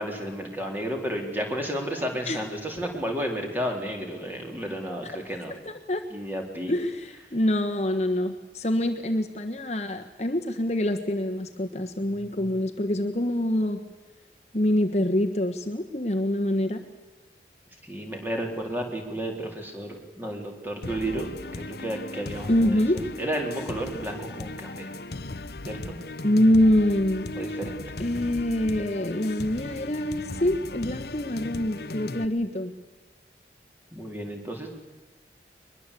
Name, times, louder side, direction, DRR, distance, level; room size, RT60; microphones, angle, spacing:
voice 1, 0.0-5.5 6.1-6.7 12.1-12.4 17.8-24.9 25.7-26.0 27.3-27.8 33.9-34.7, right 1 dB, 10° right, 2 dB, 4.0 m, -32 dB
voice 2, 5.7-6.0 6.7-13.8 14.5-16.8 22.5-23.0 26.2-27.3 28.0-32.7, left 1 dB, 40° left, 5 dB, 1.4 m, -25 dB
sound 1, 20.8-32.2, left 2 dB, 65° left, 1.0 m, -37 dB
22.5 x 21.5 x 8.5 m, 1.2 s
head